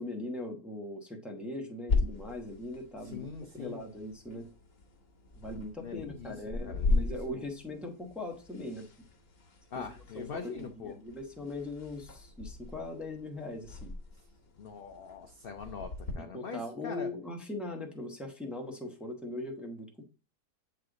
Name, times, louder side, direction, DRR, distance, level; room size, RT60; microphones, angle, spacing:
voice 1, 0.0-4.5 5.3-8.9 9.8-13.9 16.2-20.0, left 2 dB, ahead, 1 dB, 0.8 m, -40 dB
sound 1, 1.9-16.1, left 3 dB, 45° left, 1.1 m, -37 dB
voice 2, 3.1-3.8 5.8-6.3 6.6-7.4 9.7-11.0 14.6-17.1, left 6 dB, 65° left, 5 dB, 0.5 m, -42 dB
7.9 x 3.3 x 3.7 m, 0.34 s
omnidirectional pair, 1.7 m